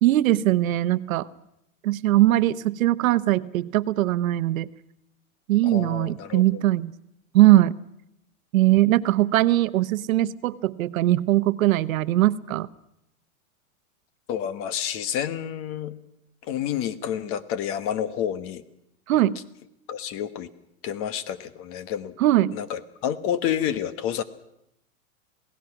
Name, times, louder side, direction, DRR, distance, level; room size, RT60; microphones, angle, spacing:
voice 1, 0.0-1.3 1.8-4.7 5.5-6.9 7.3-7.8 8.5-12.7 19.1-19.4 22.2-22.5, right 15 dB, 75° right, 15 dB, 1.0 m, -20 dB
voice 2, 5.6-6.6 14.3-16.0 16.4-18.6 19.9-20.5 20.8-22.1 22.5-24.2, left 9 dB, 30° left, 14 dB, 1.2 m, -29 dB
27.5 x 17.5 x 6.0 m, 0.81 s
supercardioid pair, 155°, 42 cm